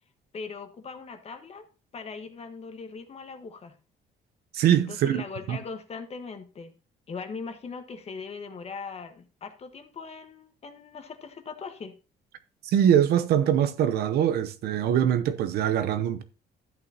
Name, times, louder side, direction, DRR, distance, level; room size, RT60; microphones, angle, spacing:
voice 1, 0.3-1.7 1.9-3.7 4.7-6.7 7.1-12.0, left 5 dB, 40° left, 1.4 m, -40 dB
voice 2, 4.5-5.6 12.6-16.2, right 10 dB, 70° right, 0.8 m, -23 dB
12.5 x 8.4 x 2.8 m
cardioid pair, 110°, 17 cm